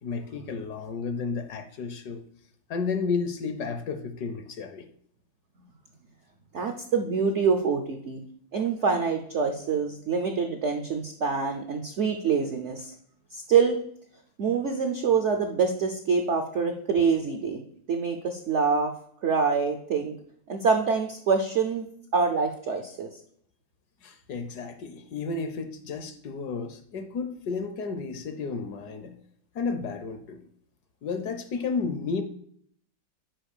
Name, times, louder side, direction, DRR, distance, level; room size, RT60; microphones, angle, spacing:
voice 1, 0.0-2.2 2.7-4.9 24.0-29.1 29.5-30.4 31.0-32.2, left 4 dB, 65° left, 8 dB, 1.1 m, -32 dB
voice 2, 6.5-8.2 8.5-12.9 13.3-13.8 14.4-17.6 17.9-18.9 19.2-20.1 20.5-21.8 22.1-23.1, right 5 dB, 70° right, 5 dB, 0.7 m, -25 dB
6.1 x 4.8 x 6.6 m, 0.64 s
omnidirectional pair, 2.1 m